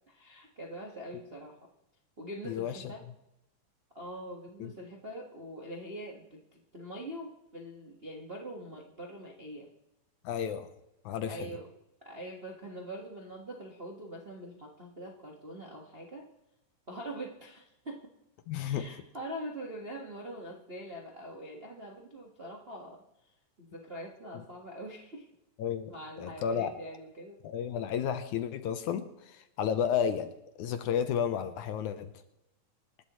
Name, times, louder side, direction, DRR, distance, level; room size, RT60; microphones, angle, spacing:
voice 1, 0.1-1.6 2.2-3.0 3.9-9.7 11.2-11.7 12.0-16.3 16.9-18.1 18.6-23.0 23.6-25.3 25.9-27.4, right 1 dB, 80° right, -1 dB, 0.5 m, -43 dB
voice 2, 2.5-2.9 4.6-4.7 10.2-10.7 11.1-11.6 18.5-18.9 25.6-26.8 27.4-32.1, left 8 dB, 75° left, 9 dB, 2.0 m, -32 dB
27.0 x 11.5 x 3.1 m, 0.88 s
omnidirectional pair, 4.0 m